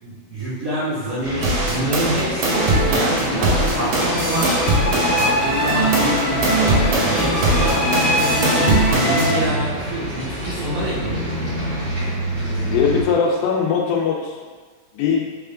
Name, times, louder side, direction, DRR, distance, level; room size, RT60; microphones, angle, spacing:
voice 1, 0.0-11.5, right 1 dB, 75° right, -13 dB, 1.4 m, -27 dB
sound 1, 1.2-13.0, right 1 dB, 55° right, 1.5 m, -27 dB
sound 2, 1.4-5.3 5.7-9.3, right 1 dB, 90° right, 1.5 m, -21 dB
sound 3, 2.4-9.5, right 1 dB, 60° left, 1.5 m, -22 dB
voice 2, 12.6-14.4 14.9-15.3, left 6 dB, 80° left, -1 dB, 2.2 m, -20 dB
5.4 x 3.3 x 2.4 m, 1.4 s
omnidirectional pair, 4.4 m